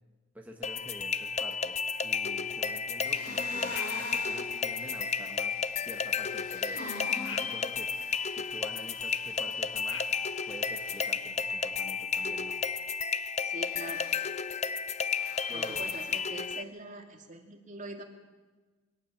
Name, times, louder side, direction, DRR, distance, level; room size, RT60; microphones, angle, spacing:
voice 1, 0.3-1.8 2.0-5.5 5.8-6.9 7.3-7.9 8.3-10.0 10.4-12.6 15.5-16.0, equal, 10° right, 1 dB, 1.6 m, -47 dB
sound 1, 0.6-16.6, left 5 dB, 35° left, 0.6 m, -32 dB
sound 2, 3.0-4.5 6.3-7.7 13.5-14.3 15.0-16.1, left 2 dB, 55° left, 4.6 m, -42 dB
sound 3, 3.2-11.2, left 6 dB, 90° left, 1.5 m, -49 dB
voice 2, 13.4-14.1 15.5-18.0, right 2 dB, 40° right, 3 dB, 2.4 m, -43 dB
23.0 x 17.5 x 7.5 m, 1.3 s
head